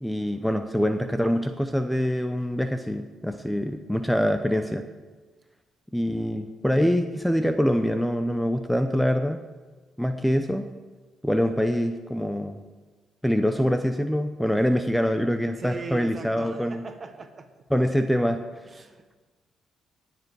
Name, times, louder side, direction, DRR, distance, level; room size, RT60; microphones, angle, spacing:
voice 1, 0.0-4.9 5.9-9.4 10.0-10.7 11.2-12.6 13.2-16.8 17.7-18.4, equal, 5° left, 8 dB, 0.7 m, -24 dB
voice 2, 15.4-17.5 18.7-19.2, right 4 dB, 35° right, 7 dB, 1.4 m, -39 dB
18.5 x 7.7 x 4.8 m, 1.3 s
cardioid pair, 90°, 0 cm